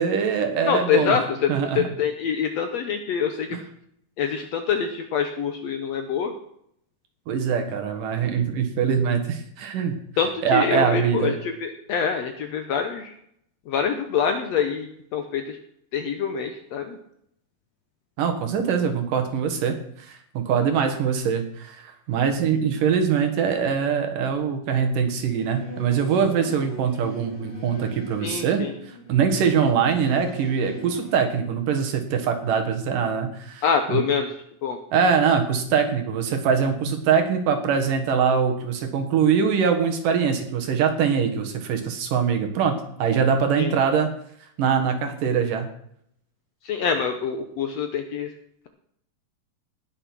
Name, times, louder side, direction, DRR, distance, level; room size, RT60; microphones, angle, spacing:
voice 1, 0.0-1.2 1.5-1.8 3.5-3.6 7.3-10.0 10.4-11.3 18.2-33.6 33.9-34.0 34.9-44.1 44.6-45.7, right 6 dB, 70° right, 5 dB, 3.1 m, -23 dB
voice 2, 0.7-3.6 4.2-6.3 10.2-13.1 13.7-15.6 15.9-17.0 28.2-28.7 33.6-34.3 34.6-34.8 43.6-43.7 46.6-48.3, left 7 dB, 70° left, 6 dB, 1.7 m, -25 dB
Singing / Musical instrument, 25.1-31.3, right 1 dB, 30° left, 4.8 m, -40 dB
19.0 x 6.6 x 6.1 m, 0.70 s
omnidirectional pair, 4.0 m